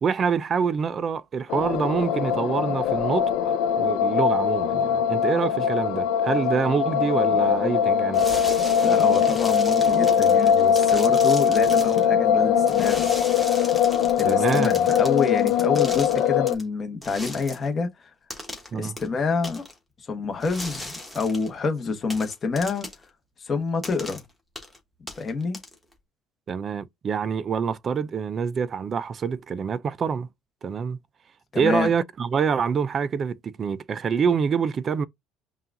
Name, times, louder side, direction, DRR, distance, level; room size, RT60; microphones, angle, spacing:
voice 1, 0.0-8.3 14.2-14.9 18.7-18.9 26.5-30.3 30.6-31.0 31.6-35.1, right 6 dB, 30° right, 0.3 m, -26 dB
sound 1, 1.5-16.6, left 8 dB, 75° left, 0.5 m, -21 dB
sound 2, 7.4-7.8 8.2-8.5 9.5-9.8 10.3-10.6 12.0-12.3 13.5-13.8 14.9-15.2 16.2-16.5, left 3 dB, 40° left, 2.0 m, -36 dB
sound 3, 8.1-12.1 12.7-16.6 17.0-17.7 18.3-18.7 19.0-19.1 19.4-19.7 20.4-21.5 22.1-23.0 23.8-24.2 24.6-24.8 25.1-25.9, left 1 dB, ahead, 1.2 m, -37 dB
voice 2, 8.8-13.0 14.2-18.1 18.7-19.6 20.0-22.9 23.4-24.2 25.2-25.6 31.5-31.9, left 4 dB, 25° left, 1.0 m, -27 dB
5.5 x 2.3 x 2.6 m
cardioid pair, 155°, 0 cm